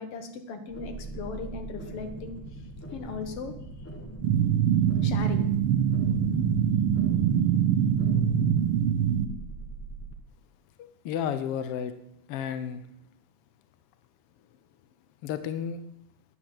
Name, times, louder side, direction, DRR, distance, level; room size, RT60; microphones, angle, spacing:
voice 1, 0.0-3.9 5.0-5.5 6.5-6.6, left 4 dB, 55° left, 6 dB, 2.1 m, -38 dB
sound 1, 0.7-10.1, right 2 dB, 15° left, 0.4 m, -41 dB
sound 2, 4.2-9.3, right 9 dB, 70° right, 1.4 m, -24 dB
voice 2, 10.8-11.9 12.3-12.9 15.2-15.8, left 8 dB, 80° left, 11 dB, 1.3 m, -32 dB
10.5 x 9.4 x 7.9 m, 0.76 s
omnidirectional pair, 3.6 m